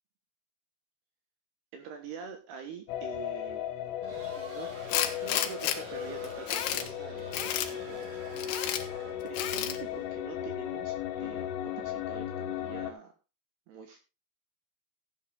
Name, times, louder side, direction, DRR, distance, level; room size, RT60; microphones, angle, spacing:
voice 1, 1.7-3.6 4.4-4.7 5.0-8.4 9.2-13.1 13.7-14.0, right 7 dB, 70° right, 6 dB, 3.2 m, -45 dB
sound 1, 2.9-12.9, left 11 dB, 90° left, 4.0 m, -36 dB
sound 2, 4.0-9.4, right 4 dB, 45° right, 2.4 m, -48 dB
Tools, 4.9-5.8 6.2-6.9 7.3-7.7 8.4-8.8 9.3-9.8, left 11 dB, 70° left, 3.0 m, -31 dB
15.5 x 8.3 x 3.9 m, 0.29 s
omnidirectional pair, 5.3 m